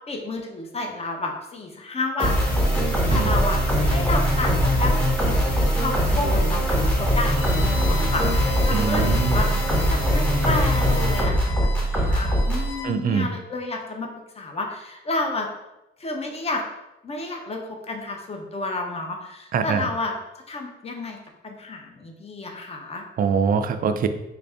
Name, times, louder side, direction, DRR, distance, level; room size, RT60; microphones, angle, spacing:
voice 1, 0.1-2.6 3.1-3.6 3.9-5.4 5.7-14.1 14.4-15.5 16.0-16.6 17.0-20.1 20.5-21.2 21.4-23.0, left 2 dB, 30° left, 2 dB, 0.7 m, -31 dB
sound 1, 2.2-12.7, equal, 5° left, 1.3 m, -21 dB
Bowed string instrument, 7.2-12.9, left 7 dB, 85° left, 0.6 m, -37 dB
voice 2, 8.7-9.4 12.8-13.3 19.5-19.9 23.2-24.1, right 6 dB, 45° right, 9 dB, 0.4 m, -23 dB
3.4 x 2.5 x 3.4 m, 0.93 s
cardioid pair, 90°, 20 cm